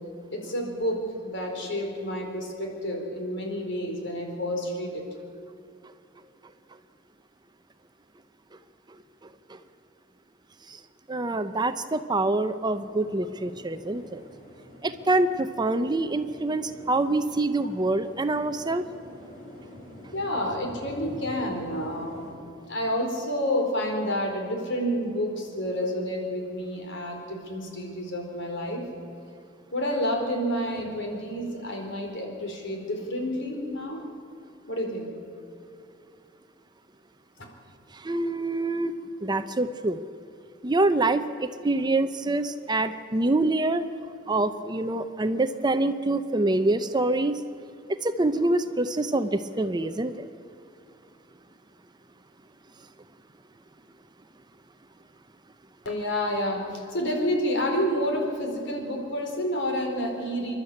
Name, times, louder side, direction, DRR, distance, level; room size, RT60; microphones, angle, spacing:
voice 1, 0.3-5.0 20.1-22.3 22.7-28.8 29.7-34.0 34.7-35.1 55.8-60.5, equal, 65° left, 2 dB, 4.4 m, -29 dB
voice 2, 11.1-14.2 14.8-18.8 37.9-39.0 39.2-40.0 40.6-43.8 44.3-47.4 47.9-50.3, right 2 dB, 20° right, 10 dB, 0.7 m, -26 dB
sound 1, 11.5-11.6 11.8-22.3, equal, 40° left, 5.5 m, -47 dB
28.0 x 12.0 x 8.6 m, 2.6 s
head